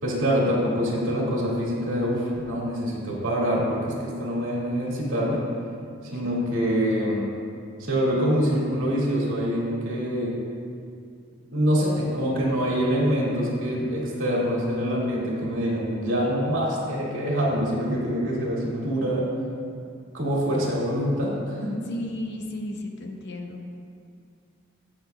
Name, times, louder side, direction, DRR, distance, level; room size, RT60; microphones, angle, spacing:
voice 1, 0.0-5.4 6.0-7.3 7.8-10.4 11.5-19.3 20.1-21.7, equal, 75° right, -5 dB, 2.2 m, -25 dB
voice 2, 21.9-23.6, left 1 dB, 60° left, 3 dB, 0.8 m, -33 dB
16.5 x 5.9 x 2.3 m, 2.3 s
head